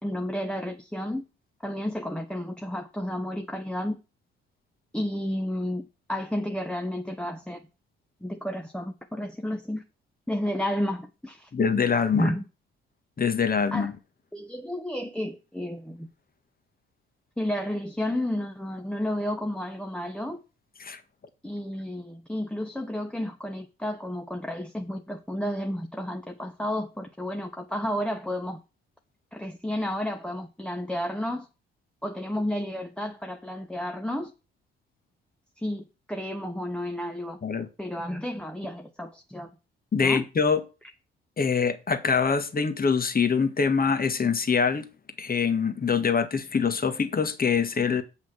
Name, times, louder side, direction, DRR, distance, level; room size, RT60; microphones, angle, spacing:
voice 1, 0.0-1.2 1.6-4.0 4.9-7.6 8.2-9.8 10.3-11.5 12.1-12.4 13.7-13.9 14.3-16.1 17.4-20.4 21.4-28.6 29.3-31.5 32.0-34.3 35.6-37.4 37.8-39.5 40.0-40.2, left 1 dB, 5° left, 1.1 m, -31 dB
voice 2, 11.5-12.3 13.2-14.0 20.8-21.0 37.4-37.7 39.9-40.6 41.4-44.8 45.2-48.0, left 5 dB, 30° left, 1.6 m, -24 dB
8.0 x 6.0 x 6.1 m
figure-of-eight pair, 45°, 30 cm